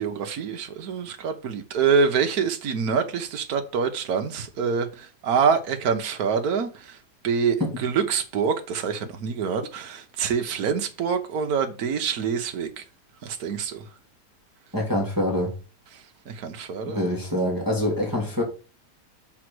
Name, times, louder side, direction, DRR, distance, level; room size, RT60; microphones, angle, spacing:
voice 1, 0.0-7.0 7.2-12.8 13.2-13.9 16.3-17.1, right 6 dB, 65° right, 1.5 m, -26 dB
voice 2, 14.7-15.5 16.9-18.4, left 1 dB, 10° right, 2.2 m, -25 dB
6.2 x 4.3 x 6.1 m
omnidirectional pair, 1.8 m